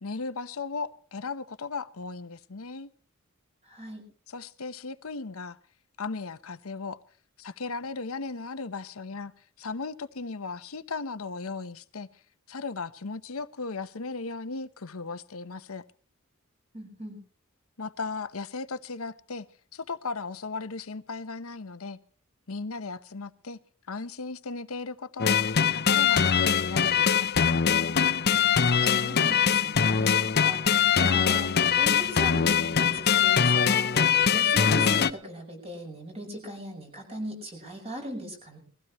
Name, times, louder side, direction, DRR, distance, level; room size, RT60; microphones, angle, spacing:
voice 1, 0.0-2.9 4.3-5.6 6.0-7.0 7.4-9.3 9.6-12.1 12.5-15.8 17.8-19.5 19.7-22.0 22.5-23.6 23.9-25.4 25.9-27.5, left 4 dB, 75° left, 0.9 m, -36 dB
voice 2, 3.6-4.0 16.7-17.2 28.8-38.6, equal, 30° right, 6.7 m, -39 dB
sound 1, 25.2-35.1, left 7 dB, 50° left, 0.7 m, -22 dB
22.0 x 15.5 x 3.1 m
head